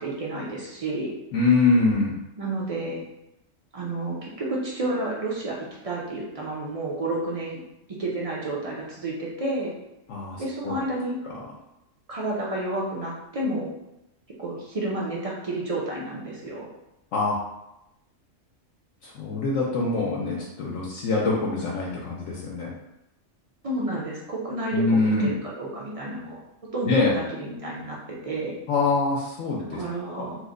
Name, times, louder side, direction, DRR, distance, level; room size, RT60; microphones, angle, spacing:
voice 1, 0.0-1.1 2.4-3.0 3.7-5.6 5.8-7.6 8.0-9.7 10.4-11.2 12.1-13.7 14.4-16.7 23.6-26.4 26.7-28.5 29.7-30.4, right 2 dB, 45° right, -4 dB, 0.4 m, -30 dB
voice 2, 1.3-2.2 10.1-10.8 17.1-17.4 19.0-22.7 24.7-25.3 26.8-27.2 28.7-29.8 30.1-30.3, left 3 dB, 75° left, -4 dB, 1.0 m, -24 dB
3.1 x 2.1 x 3.6 m, 0.89 s
omnidirectional pair, 1.3 m